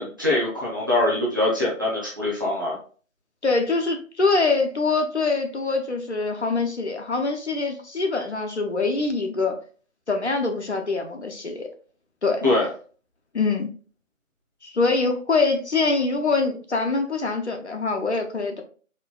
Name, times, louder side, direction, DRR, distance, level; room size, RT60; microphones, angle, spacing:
voice 1, 0.0-2.8 12.4-12.7, left 2 dB, 15° right, -8 dB, 0.9 m, -23 dB
voice 2, 3.4-9.6 10.1-11.7 12.2-12.4 13.3-13.7 14.6-18.6, left 3 dB, 55° left, 4 dB, 0.7 m, -24 dB
4.4 x 3.3 x 2.2 m, 0.40 s
figure-of-eight pair, 165°, 40 cm